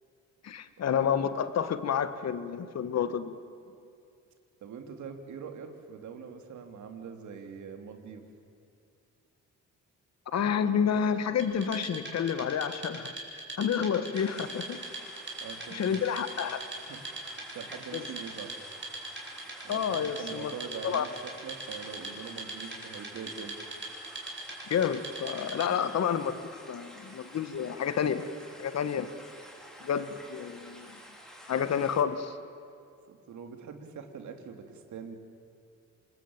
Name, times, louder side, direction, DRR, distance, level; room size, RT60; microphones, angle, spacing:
voice 1, 0.4-3.4 10.3-13.2 13.6-14.8 15.7-16.6 17.9-18.1 19.7-20.5 20.8-21.1 24.7-28.2 28.6-29.1 29.8-31.0 31.5-32.4, left 7 dB, 60° left, 11 dB, 1.6 m, -29 dB
voice 2, 4.6-8.3 15.4-16.1 16.9-17.0 17.5-18.5 19.6-23.6 33.1-35.1, right 6 dB, 70° right, 5 dB, 3.0 m, -43 dB
Wood, 11.4-25.9, right 2 dB, 40° right, 5.5 m, -42 dB
sound 1, 14.1-32.0, equal, ahead, 3.8 m, -50 dB
25.5 x 21.0 x 8.9 m, 2.4 s
cardioid pair, 90°, 30 cm